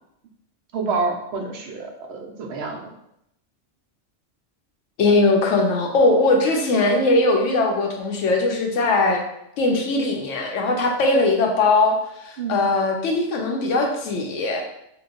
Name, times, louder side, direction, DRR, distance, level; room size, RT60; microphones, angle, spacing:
voice 1, 0.7-2.9 12.4-12.6, right 4 dB, 65° right, 1 dB, 0.8 m, -28 dB
voice 2, 5.0-9.2 9.6-12.0 12.2-14.6, left 2 dB, 75° left, 2 dB, 0.9 m, -20 dB
2.9 x 2.2 x 3.6 m, 0.80 s
omnidirectional pair, 1.3 m